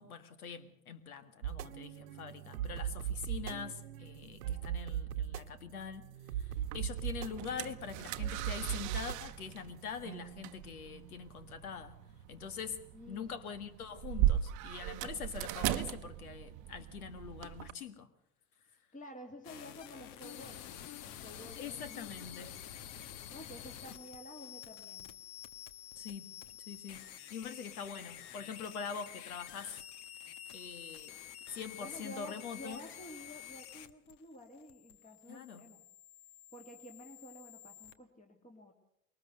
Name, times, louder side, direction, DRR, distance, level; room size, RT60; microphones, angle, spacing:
voice 1, 0.0-6.1 6.4-12.0 12.3-12.8 13.1-18.1 21.6-22.5 26.0-26.3 26.7-27.0 27.3-29.7 30.5-31.1 31.5-32.8 35.3-35.6, left 6 dB, 80° left, 13 dB, 1.8 m, -44 dB
sound 1, 1.4-14.0, right 10 dB, 75° right, 1.0 m, -41 dB
sound 2, 6.6-17.7, right 14 dB, 45° right, 0.8 m, -38 dB
voice 2, 12.9-13.4 18.9-22.6 23.3-25.1 31.7-35.8 36.5-38.7, equal, 20° left, 3 dB, 2.3 m, -51 dB
sound 3, 19.4-37.9, left 10 dB, 55° left, 1.3 m, -49 dB
22.0 x 19.0 x 6.6 m, 0.78 s
hypercardioid pair, 85°, 43 cm